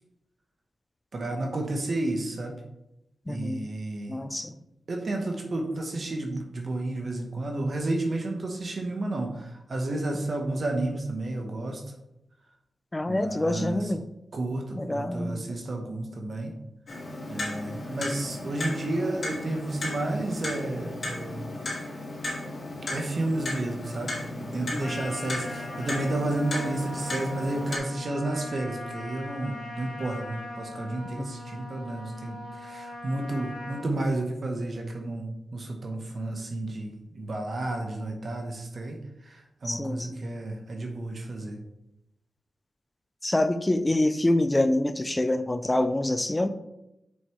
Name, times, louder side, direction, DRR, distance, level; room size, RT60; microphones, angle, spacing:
voice 1, 1.1-2.6 3.3-4.2 4.9-11.8 13.1-13.9 14.3-16.6 17.3-21.5 22.9-41.6, right 2 dB, 55° right, 2 dB, 1.0 m, -31 dB
voice 2, 3.3-3.7 4.1-4.5 12.9-14.0 14.8-15.5 24.7-25.0 31.2-31.3 39.6-40.2 43.2-46.5, left 1 dB, 20° left, 10 dB, 0.5 m, -26 dB
Clock, 16.9-27.8, left 2 dB, 55° left, 2.1 m, -35 dB
Trumpet, 24.8-33.9, left 1 dB, 75° left, 1.8 m, -40 dB
6.3 x 5.3 x 3.2 m, 0.88 s
cardioid pair, 55°, 0 cm